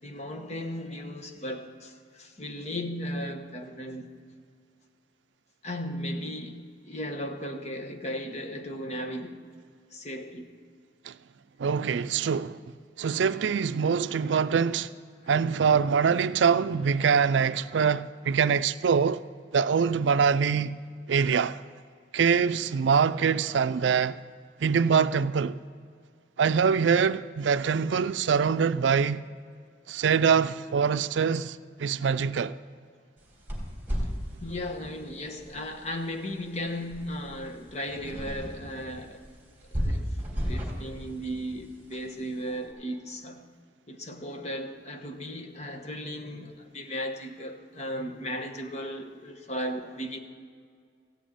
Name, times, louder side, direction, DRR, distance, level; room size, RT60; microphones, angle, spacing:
voice 1, 0.0-4.1 5.6-9.4 9.9-10.5 34.4-39.2 39.7-40.1 40.4-43.4 43.9-50.2, equal, 35° left, 1.1 m, -36 dB
voice 2, 11.6-12.6 13.0-14.9 15.3-19.2 19.5-20.8 21.1-21.6 22.1-24.2 24.6-25.6 26.4-29.2 29.9-32.6, right 6 dB, 80° right, 0.4 m, -24 dB
sound 1, 33.2-42.6, equal, 10° right, 3.2 m, -36 dB
15.0 x 6.3 x 9.3 m
head